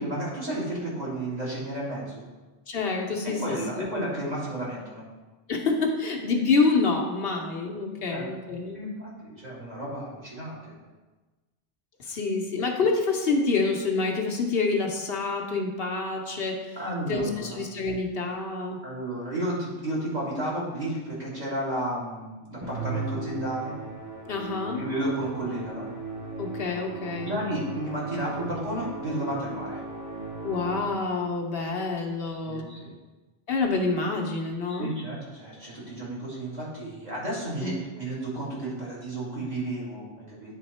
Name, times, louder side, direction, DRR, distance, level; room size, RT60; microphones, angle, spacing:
voice 1, 0.0-2.3 3.2-5.0 8.1-8.3 8.7-10.7 16.8-17.6 18.8-23.7 24.7-25.9 27.2-29.8 32.3-32.9 34.7-40.6, right 1 dB, 40° right, -8 dB, 2.3 m, -32 dB
voice 2, 2.7-3.4 3.8-3.9 5.5-8.8 12.1-16.8 17.1-18.8 24.3-24.8 26.4-27.3 30.4-32.6 33.5-34.9 37.6-37.7, left 3 dB, 70° left, 1 dB, 1.1 m, -27 dB
Musical instrument, 22.6-31.1, right 2 dB, 20° right, 1.2 m, -37 dB
9.2 x 3.8 x 4.2 m, 1.2 s
omnidirectional pair, 1.0 m